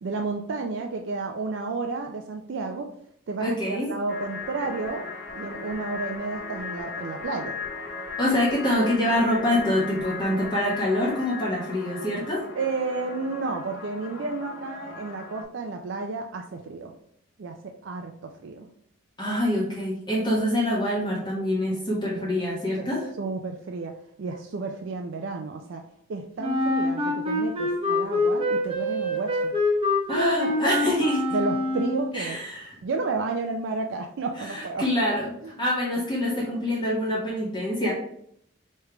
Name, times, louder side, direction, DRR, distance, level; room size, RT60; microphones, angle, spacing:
voice 1, 0.0-2.9 3.3-5.1 5.3-7.6 12.5-16.9 17.4-18.7 22.8-22.9 23.2-25.8 26.1-29.5 31.3-32.4 32.8-34.8 35.4-35.6, right 3 dB, 65° right, 4 dB, 0.4 m, -31 dB
voice 2, 3.4-3.9 8.2-12.4 19.2-23.0 30.1-31.2 32.1-32.7 34.4-37.9, left 1 dB, 20° left, -6 dB, 1.0 m, -25 dB
sound 1, 4.1-15.4, left 4 dB, 60° left, 1.0 m, -37 dB
Wind instrument woodwind instrument, 26.4-32.1, left 2 dB, 30° right, 0.8 m, -25 dB
3.3 x 3.2 x 4.7 m, 0.70 s
head